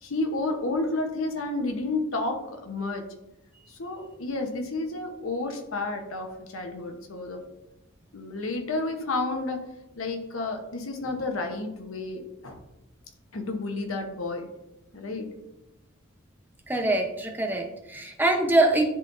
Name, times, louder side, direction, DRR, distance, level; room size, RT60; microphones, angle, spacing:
voice 1, 0.0-3.1 3.7-7.5 8.1-9.7 10.0-12.6 13.3-14.5 14.9-15.3, left 2 dB, 80° left, 4 dB, 1.0 m, -31 dB
voice 2, 16.7-18.8, right 2 dB, 10° right, 2 dB, 0.7 m, -24 dB
10.5 x 3.9 x 2.6 m, 0.92 s
head